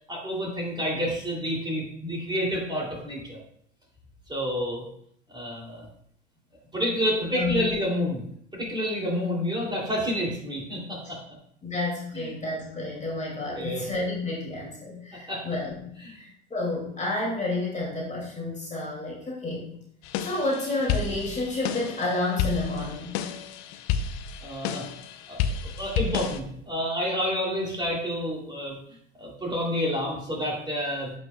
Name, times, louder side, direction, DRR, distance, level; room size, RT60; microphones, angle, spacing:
voice 1, 0.1-3.4 4.3-4.8 5.3-5.8 6.7-8.2 8.5-11.2 12.1-12.3 13.5-13.8 15.3-15.4 16.0-16.2 24.4-24.9 25.3-25.4 25.8-28.8 29.2-31.1, equal, 15° right, -3 dB, 2.7 m, -29 dB
voice 2, 7.3-7.6 11.6-15.9 16.1-19.7 20.2-23.2, left 2 dB, 20° left, -4 dB, 2.4 m, -30 dB
sound 1, 20.0-26.4, left 7 dB, 55° left, 0.7 m, -31 dB
9.1 x 5.4 x 2.3 m, 0.68 s
hypercardioid pair, 85°, 33 cm